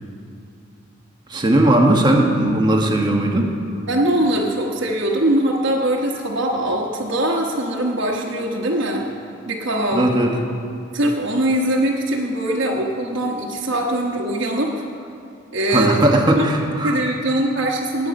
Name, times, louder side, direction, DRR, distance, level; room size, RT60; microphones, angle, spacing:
voice 1, 1.3-3.5 9.9-10.4 15.7-17.0, right 1 dB, 20° right, 1 dB, 1.2 m, -17 dB
voice 2, 3.9-9.1 9.5-10.1 10.9-14.8 15.5-16.0 16.3-16.4 16.8-18.1, right 1 dB, 70° right, -3 dB, 1.2 m, -22 dB
19.0 x 8.2 x 5.3 m, 2.4 s
head